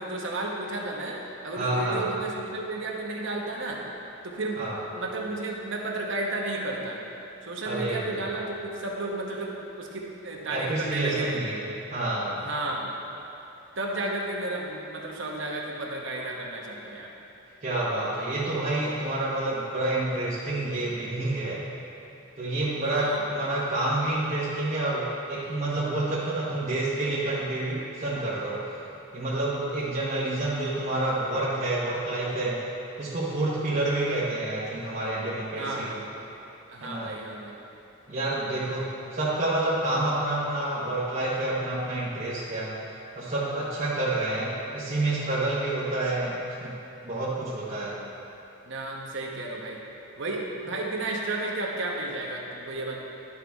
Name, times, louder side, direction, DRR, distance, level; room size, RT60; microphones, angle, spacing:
voice 1, 0.0-3.8 4.2-4.6 4.9-7.0 7.4-11.4 12.4-12.9 13.8-17.1 22.8-23.2 35.6-36.0 36.7-37.6 48.6-49.8 50.2-53.0, right 2 dB, 65° right, -1 dB, 1.0 m, -32 dB
voice 2, 1.6-2.0 4.6-4.8 7.6-8.2 10.5-12.5 17.6-21.6 22.4-28.7 29.1-32.6 33.0-36.0 36.8-37.1 38.1-42.8 43.1-46.8 47.0-48.1, right 2 dB, 35° right, -9 dB, 1.0 m, -28 dB
11.5 x 5.7 x 3.5 m, 2.9 s
head